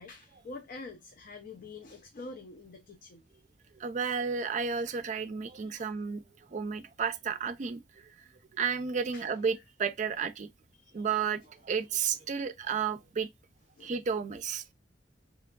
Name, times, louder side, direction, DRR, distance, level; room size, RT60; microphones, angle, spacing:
voice 1, 0.0-3.3 5.4-5.9 9.1-9.3 10.8-11.0 12.1-12.2 13.8-13.9, left 3 dB, 50° left, 0.4 m, -47 dB
voice 2, 3.8-6.2 6.5-7.8 8.5-10.5 10.9-13.3 13.8-14.6, right 6 dB, 40° right, 0.4 m, -32 dB
3.4 x 2.8 x 2.2 m
head